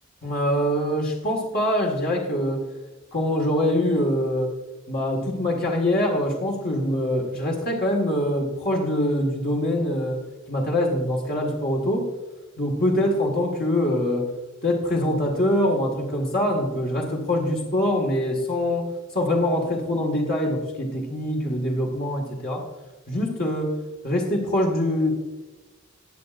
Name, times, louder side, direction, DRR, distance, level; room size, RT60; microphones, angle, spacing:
voice 1, 0.2-2.6 3.1-4.5 4.9-10.2 10.5-12.1 12.6-14.3 14.6-22.7 23.1-23.8 24.0-25.1, left 1 dB, 45° left, -1 dB, 1.7 m, -24 dB
20.5 x 7.9 x 2.5 m, 1.2 s
head